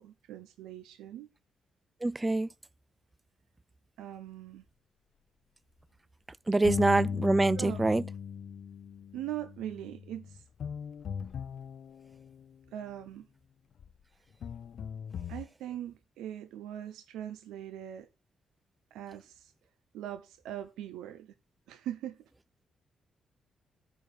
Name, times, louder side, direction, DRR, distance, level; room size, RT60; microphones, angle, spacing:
voice 1, 0.0-1.3 4.0-4.6 7.5-7.9 9.1-10.4 12.7-13.3 15.3-18.1 18.9-19.5 19.9-21.3 21.7-22.2, right 11 dB, 90° right, 0.8 m, -41 dB
voice 2, 2.0-2.5 6.5-8.0, right 2 dB, 20° right, 0.4 m, -25 dB
sound 1, 6.6-12.6 13.8-13.9 14.4-15.4, left 7 dB, 65° left, 0.7 m, -38 dB
9.3 x 4.6 x 6.9 m
cardioid pair, 75°, 0 cm